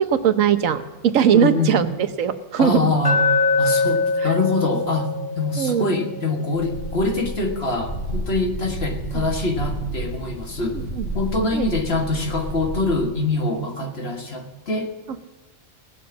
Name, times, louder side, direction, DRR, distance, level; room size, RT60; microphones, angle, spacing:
voice 1, 0.0-2.9 4.2-4.3 5.6-5.9 9.1-9.2 10.7-11.1 11.5-11.6, right 8 dB, 90° right, 10 dB, 1.3 m, -20 dB
voice 2, 1.3-1.8 2.6-3.2 3.6-10.8 11.1-14.9, left 3 dB, 50° left, 3 dB, 1.9 m, -24 dB
Glass, 3.0-7.2, left 4 dB, 20° left, 2.0 m, -24 dB
sound 1, 6.5-13.0, right 1 dB, 80° left, 7.2 m, -31 dB
18.5 x 7.7 x 7.2 m, 1.2 s
omnidirectional pair, 1.3 m